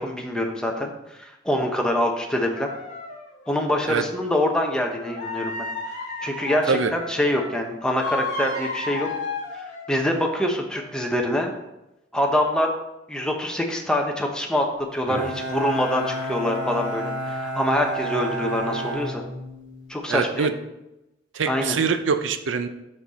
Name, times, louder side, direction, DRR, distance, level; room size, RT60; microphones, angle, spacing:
voice 1, 0.0-2.7 3.5-5.7 6.2-9.1 9.9-11.5 12.1-12.7 13.1-14.7 14.9-19.2 19.9-20.5 21.5-21.7, left 1 dB, 5° left, 1 dB, 0.9 m, -25 dB
sound 1, 2.5-4.1 5.0-7.6 8.0-10.3 10.8-11.1, left 3 dB, 40° left, 1.6 m, -33 dB
Bowed string instrument, 15.1-19.9, right 1 dB, 50° right, 2.1 m, -31 dB
voice 2, 20.1-20.5 21.3-22.7, right 5 dB, 85° right, 9 dB, 0.6 m, -23 dB
6.6 x 5.9 x 4.1 m, 0.92 s
head